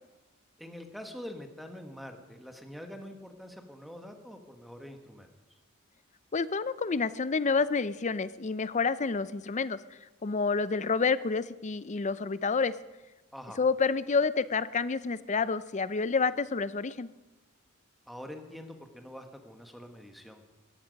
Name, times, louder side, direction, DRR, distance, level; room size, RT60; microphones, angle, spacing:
voice 1, 0.6-5.6 13.3-13.6 18.1-20.4, equal, ahead, 5 dB, 1.4 m, -45 dB
voice 2, 6.3-9.8 10.2-12.7 13.6-17.1, left 4 dB, 35° left, 16 dB, 0.5 m, -28 dB
17.5 x 14.0 x 5.3 m, 1.1 s
head